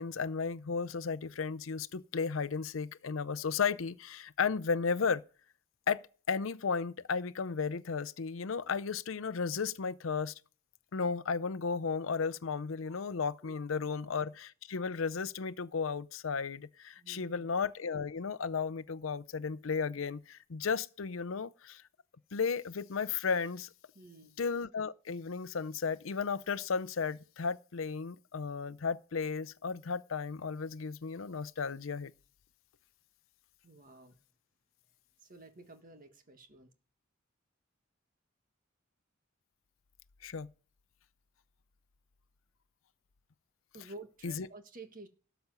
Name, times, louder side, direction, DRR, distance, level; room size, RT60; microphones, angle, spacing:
voice 1, 0.0-5.2 5.9-10.3 10.9-21.8 22.3-23.7 24.4-32.1 40.2-40.5 44.2-44.5, left 5 dB, 75° left, 0.6 m, -34 dB
voice 2, 17.0-17.5 23.9-24.4 33.6-34.2 35.2-36.7 43.7-45.1, right 2 dB, 45° right, 1.6 m, -52 dB
13.0 x 7.0 x 5.4 m
head